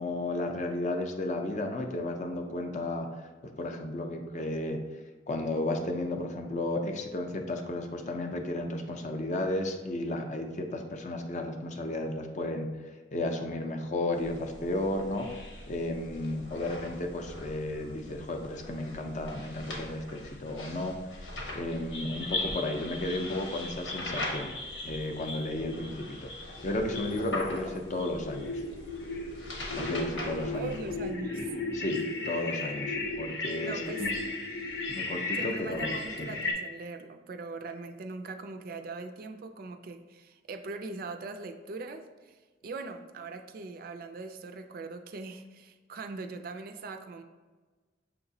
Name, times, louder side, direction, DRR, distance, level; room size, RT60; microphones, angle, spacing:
voice 1, 0.0-3.3 3.6-4.8 5.3-12.7 13.1-15.3 15.7-24.6 24.8-28.6 29.7-30.7 31.7-34.1 34.9-36.3, left 1 dB, 40° left, 4 dB, 0.5 m, -33 dB
sound 1, 14.1-31.1, left 1 dB, 90° left, 1.0 m, -42 dB
sound 2, 21.9-36.5, left 2 dB, 70° left, 0.7 m, -36 dB
voice 2, 30.5-31.5 33.6-34.1 35.3-47.2, right 3 dB, 50° right, 7 dB, 0.3 m, -41 dB
6.8 x 2.9 x 2.7 m, 1.3 s
head